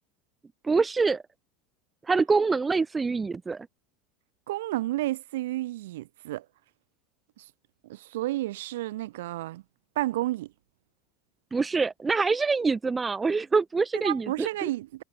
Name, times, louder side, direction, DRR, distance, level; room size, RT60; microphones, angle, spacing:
voice 1, 0.6-1.2 2.1-3.7 11.5-14.7, right 4 dB, 10° right, 0.6 m, -25 dB
voice 2, 4.5-6.4 7.4-7.5 7.8-9.6 9.9-10.5 13.9-15.0, right 16 dB, 80° right, 3.2 m, -31 dB
supercardioid pair, 165°, 0 cm